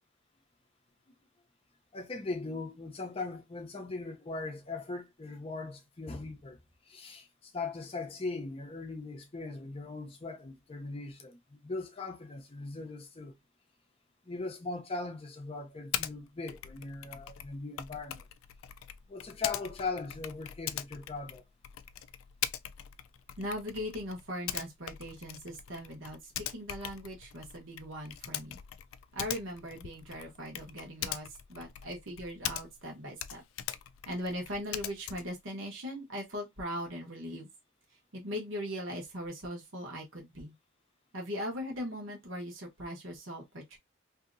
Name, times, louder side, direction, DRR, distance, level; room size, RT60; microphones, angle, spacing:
voice 1, 1.9-6.6 6.9-13.4 14.2-18.3 19.1-21.4, left 3 dB, 30° left, 0.6 m, -39 dB
Typing, 15.9-16.1 16.5-32.9 33.2-35.4, left 11 dB, 75° left, 0.3 m, -41 dB
voice 2, 23.4-28.6 29.1-33.4 34.1-37.5 38.1-40.5 41.1-43.8, equal, 65° right, 1.1 m, -39 dB
2.8 x 2.7 x 2.5 m
head